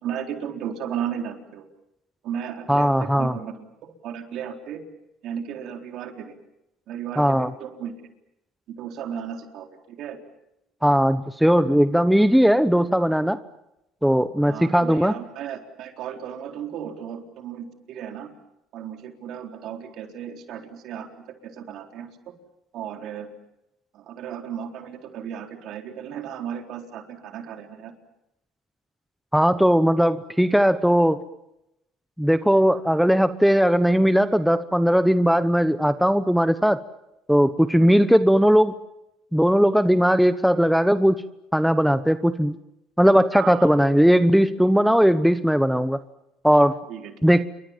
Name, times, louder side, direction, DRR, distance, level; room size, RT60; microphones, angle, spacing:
voice 1, 0.0-1.7 2.2-4.8 5.2-6.3 6.9-7.9 8.8-10.2 14.5-18.3 18.7-21.1 21.4-22.2 22.7-23.3 23.9-27.9 37.8-38.0 43.3-43.8 46.9-47.1, right 8 dB, 60° right, 4 dB, 4.1 m, -35 dB
voice 2, 2.7-3.3 7.2-7.5 10.8-13.4 14.0-15.1 29.3-31.2 32.2-36.8 37.3-38.8 39.3-41.2 41.5-42.6 43.0-46.0 46.4-46.7 47.2-47.4, equal, ahead, 12 dB, 1.0 m, -18 dB
28.5 x 24.0 x 7.5 m, 0.86 s
supercardioid pair, 100°, 0 cm